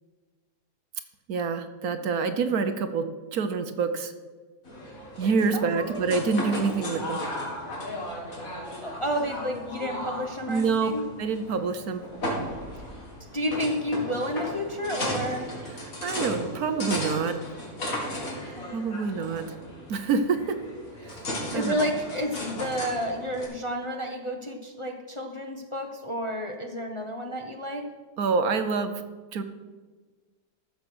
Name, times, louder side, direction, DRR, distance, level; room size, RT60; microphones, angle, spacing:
voice 1, 1.3-4.1 5.2-7.2 10.5-10.9 11.2-12.0 16.0-17.4 18.7-19.4 19.9-20.6 21.1-21.2 21.5-21.8 28.2-28.9 29.3-29.4, right 5 dB, 65° right, 9 dB, 1.3 m, -26 dB
sound 1, 4.6-23.4, left 1 dB, 55° left, 2.9 m, -35 dB
voice 2, 5.5-6.1 8.8-11.0 13.3-15.5 18.0-18.7 21.3-27.9, equal, 25° left, 2 dB, 0.8 m, -31 dB
14.0 x 6.9 x 6.1 m, 1.4 s
omnidirectional pair, 1.7 m